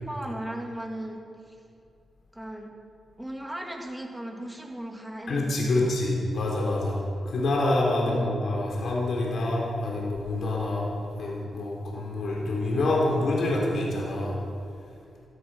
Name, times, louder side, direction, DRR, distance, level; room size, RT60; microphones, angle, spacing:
voice 1, 0.0-1.2 1.5-1.6 2.3-2.7 3.2-5.9 8.0-8.4, right 1 dB, 10° right, 1 dB, 2.8 m, -37 dB
voice 2, 5.3-7.0 7.3-10.9 11.2-14.4, left 2 dB, 70° left, -3 dB, 3.7 m, -26 dB
16.0 x 14.5 x 5.7 m, 2.5 s
cardioid pair, 75°, 0 cm